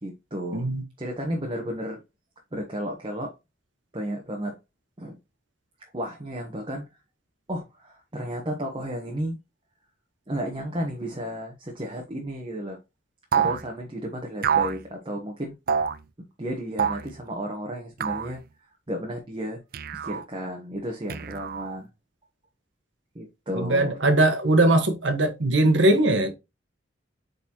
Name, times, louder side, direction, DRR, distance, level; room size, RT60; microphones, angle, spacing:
voice 1, 0.0-2.0 2.5-3.3 3.9-4.6 5.0-5.2 5.9-6.9 7.5-9.4 10.3-12.8 13.4-15.5 16.2-18.4 18.9-19.6 20.0-21.9 23.1-24.0, equal, 25° right, 1.0 m, -33 dB
sound 1, 13.3-13.6 14.4-14.8 15.7-16.0 16.8-17.1 18.0-18.3 19.7-20.2 21.1-21.8, right 7 dB, 50° right, 0.4 m, -26 dB
voice 2, 23.5-26.3, right 1 dB, 70° right, 1.3 m, -20 dB
8.1 x 4.1 x 2.9 m
head